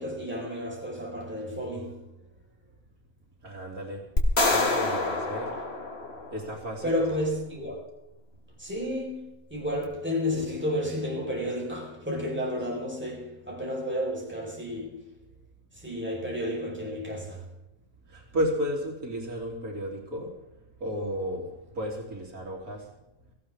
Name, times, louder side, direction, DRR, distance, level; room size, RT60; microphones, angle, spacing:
voice 1, 0.0-2.1 6.8-7.8 8.6-15.1 15.8-17.5, equal, 5° right, 4.8 m, -31 dB
voice 2, 3.4-4.2 4.5-5.6 6.3-7.0 18.1-20.4 20.8-22.9, equal, 85° right, 3.8 m, -33 dB
sound 1, 4.2-6.5, left 2 dB, 45° left, 2.2 m, -27 dB
17.5 x 15.5 x 3.7 m
omnidirectional pair, 1.5 m